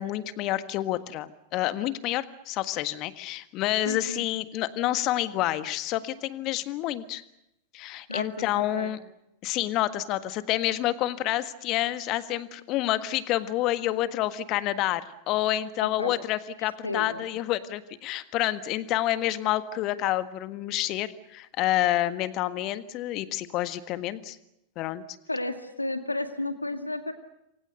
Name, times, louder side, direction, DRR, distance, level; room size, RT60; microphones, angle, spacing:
voice 1, 0.0-7.2 7.7-9.0 9.4-24.4 24.7-25.0, left 14 dB, 40° left, 12 dB, 1.6 m, -28 dB
voice 2, 3.9-4.2 8.1-8.5 8.8-8.9 15.8-16.1 16.8-17.3 25.3-27.1, left 2 dB, 85° left, 8 dB, 2.2 m, -32 dB
28.5 x 24.0 x 6.7 m, 0.85 s
figure-of-eight pair, 90°, 0 cm